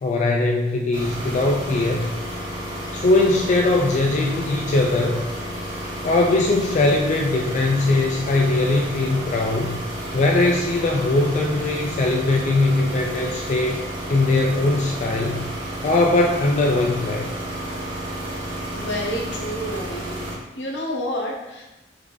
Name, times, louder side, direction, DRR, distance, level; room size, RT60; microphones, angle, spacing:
voice 1, 0.0-2.1 2.9-5.2 6.0-9.8 10.1-13.8 14.1-15.6 15.8-17.3, left 2 dB, 40° left, 0 dB, 0.3 m, -20 dB
sound 1, 0.9-20.3, equal, 25° right, 1.1 m, -31 dB
voice 2, 18.6-20.2 20.6-21.6, equal, 75° left, -1 dB, 0.9 m, -29 dB
3.9 x 3.5 x 3.1 m, 0.98 s
head